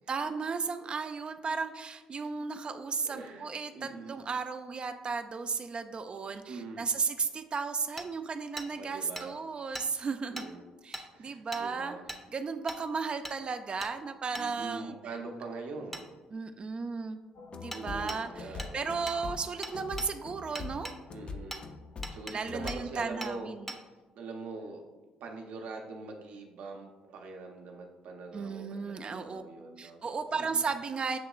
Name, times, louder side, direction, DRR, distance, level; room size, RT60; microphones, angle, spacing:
voice 1, 0.1-10.5 10.8-12.0 12.3-15.0 16.3-17.2 17.5-20.9 22.3-23.7 28.3-29.4 29.8-31.2, right 5 dB, 40° right, 8 dB, 0.4 m, -35 dB
voice 2, 3.0-4.2 6.5-6.9 8.8-9.4 10.3-10.6 11.1-12.1 14.4-16.1 17.7-18.7 21.1-21.6 22.1-23.5 24.2-24.8 25.2-30.0 30.5-30.6, right 3 dB, 70° right, 2 dB, 0.7 m, -43 dB
Hammer, 8.0-8.1 8.6-8.7 9.2-9.3 9.7-9.9 10.4-10.5 10.9-11.1 11.5-11.6 12.1-12.2 12.7-12.8 13.2-13.4 13.8-13.9 14.3-14.5 15.9-16.0 17.7-17.8 18.1-18.2 18.6-18.7 19.1-19.2 19.6-20.1 20.6-21.0 21.5-21.6 22.0-22.4 22.7-22.8 23.2-23.3 23.7-23.8, equal, 5° left, 0.7 m, -40 dB
sound 1, 17.4-23.0, left 4 dB, 40° left, 0.4 m, -43 dB
7.5 x 2.9 x 2.3 m, 1.2 s
hypercardioid pair, 55°, 3 cm